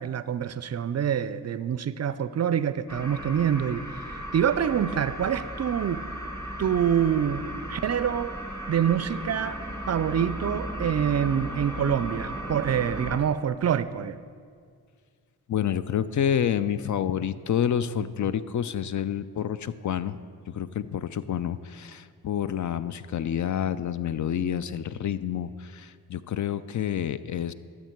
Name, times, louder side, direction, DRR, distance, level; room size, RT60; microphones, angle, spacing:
voice 1, 0.0-3.8 4.1-6.0 6.6-8.4 8.7-9.6 9.9-14.2, right 8 dB, 45° right, 15 dB, 0.4 m, -26 dB
sound 1, 2.9-13.2, right 1 dB, 10° left, 1.6 m, -36 dB
voice 2, 15.5-20.2 20.5-27.5, left 9 dB, 50° left, 14 dB, 0.5 m, -28 dB
12.5 x 6.6 x 4.5 m, 2.1 s
supercardioid pair, 45°, 38 cm